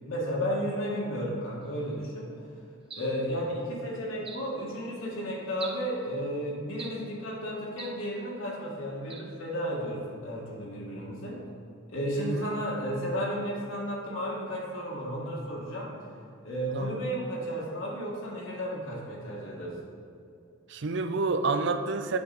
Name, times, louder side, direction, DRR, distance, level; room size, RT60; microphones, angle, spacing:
voice 1, 0.0-2.3 2.9-11.4 11.9-15.9 16.4-19.8, equal, 85° left, -4 dB, 2.1 m, -33 dB
sound 1, 2.9-3.3 4.3-4.6 5.6-5.9 6.8-7.1 7.8-8.1 9.1-9.3, right 5 dB, 30° right, 0.7 m, -43 dB
voice 2, 20.7-22.2, right 3 dB, 65° right, 8 dB, 0.5 m, -28 dB
8.3 x 6.5 x 4.2 m, 2.5 s
head